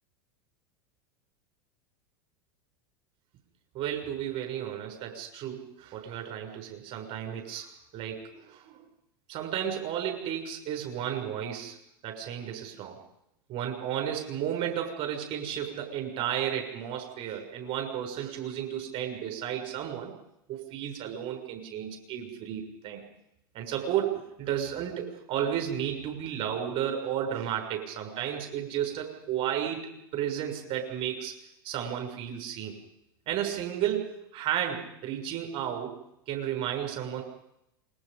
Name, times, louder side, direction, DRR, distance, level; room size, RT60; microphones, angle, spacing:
voice 1, 3.7-8.8 9.3-11.8 12.0-13.0 13.5-20.1 20.5-23.0 23.5-31.3 31.6-32.7 33.3-36.0 36.3-37.2, right 10 dB, 50° right, 4 dB, 7.0 m, -33 dB
27.5 x 22.0 x 5.4 m, 0.80 s
hypercardioid pair, 95°, 12 cm